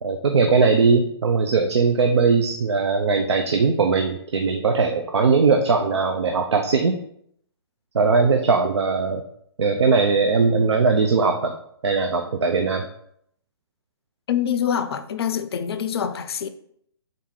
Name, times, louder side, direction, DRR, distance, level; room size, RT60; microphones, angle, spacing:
voice 1, 0.0-7.0 7.9-9.2 9.6-11.5 11.8-12.9, right 4 dB, 85° right, 5 dB, 0.4 m, -20 dB
voice 2, 14.3-16.5, left 8 dB, 65° left, 12 dB, 0.4 m, -25 dB
3.7 x 2.7 x 3.7 m, 0.69 s
hypercardioid pair, 135°, 14 cm